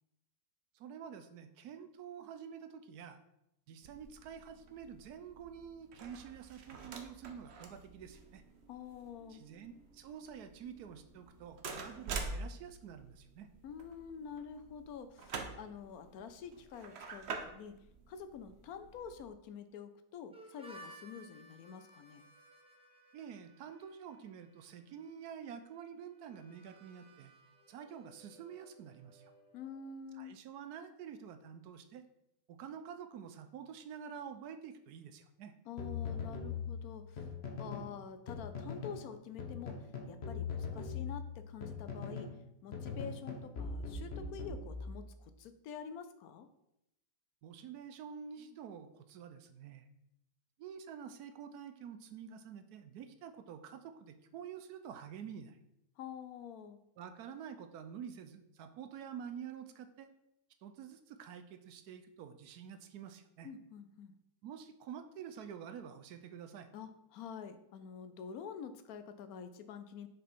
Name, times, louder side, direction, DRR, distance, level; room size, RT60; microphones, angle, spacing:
voice 1, 0.7-3.2 3.7-8.4 9.3-13.5 23.1-27.3 27.7-29.3 30.2-32.1 32.5-35.5 47.4-49.9 50.6-55.6 57.0-60.1 60.6-63.5 64.4-66.7, right 8 dB, 80° right, 9 dB, 1.1 m, -48 dB
sound 1, 3.8-19.3, right 4 dB, 50° right, 0.9 m, -47 dB
voice 2, 8.7-9.4 13.6-17.8 18.1-22.2 29.5-30.4 35.7-37.3 37.6-42.3 42.6-46.5 56.0-56.8 63.4-64.1 66.7-70.1, left 7 dB, 70° left, 10 dB, 1.0 m, -47 dB
Harmonica, 20.3-29.9, right 1 dB, 5° right, 0.5 m, -59 dB
sound 2, 35.8-37.9 38.3-39.0 39.4-42.4 42.7-45.1, left 5 dB, 45° left, 1.1 m, -41 dB
6.4 x 5.3 x 4.4 m, 0.82 s
omnidirectional pair, 1.7 m